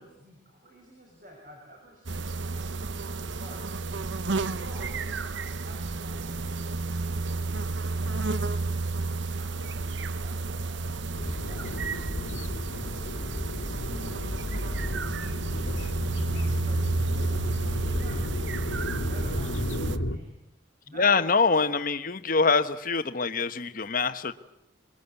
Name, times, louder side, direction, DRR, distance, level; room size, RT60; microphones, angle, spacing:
voice 1, 0.0-3.8 4.3-6.4 6.8-11.0 11.4-11.8 12.3-13.4 14.0-14.3 14.6-20.4 20.8-21.3, right 1 dB, 45° right, 0 dB, 6.5 m, -50 dB
sound 1, 2.1-20.0, right 3 dB, 65° right, 0.8 m, -31 dB
sound 2, 4.7-9.6, right 1 dB, 90° right, 4.6 m, -54 dB
sound 3, 11.1-20.2, left 1 dB, 85° left, 1.9 m, -33 dB
voice 2, 20.9-24.3, left 4 dB, 45° left, 11 dB, 1.2 m, -24 dB
25.5 x 22.0 x 8.3 m, 0.85 s
head